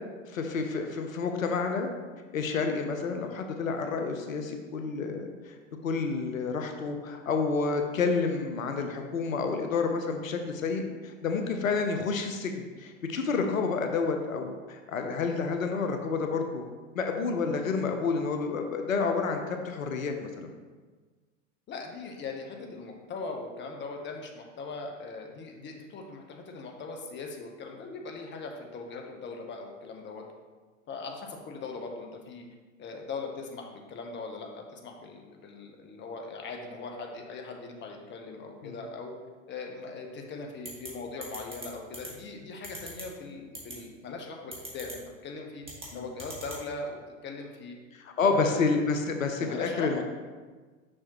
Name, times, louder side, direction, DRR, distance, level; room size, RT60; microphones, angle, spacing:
voice 1, 0.3-1.9 2.3-5.6 5.8-16.6 16.9-20.5 38.6-38.8 45.9-46.0 48.0-50.0, left 4 dB, 85° left, 5 dB, 0.7 m, -29 dB
voice 2, 21.7-30.2 30.9-32.5 32.8-39.1 39.5-45.7 45.9-47.8 48.2-48.7 49.4-50.0, left 4 dB, 30° left, 2 dB, 1.0 m, -40 dB
sound 1, 40.6-40.9 41.2-41.7 41.9-42.1 42.6-43.0 43.5-43.7 44.5-44.9 45.6-45.9 46.2-46.6, right 2 dB, 15° right, 2.0 m, -40 dB
6.5 x 5.9 x 2.9 m, 1.4 s
hypercardioid pair, 90°, 39 cm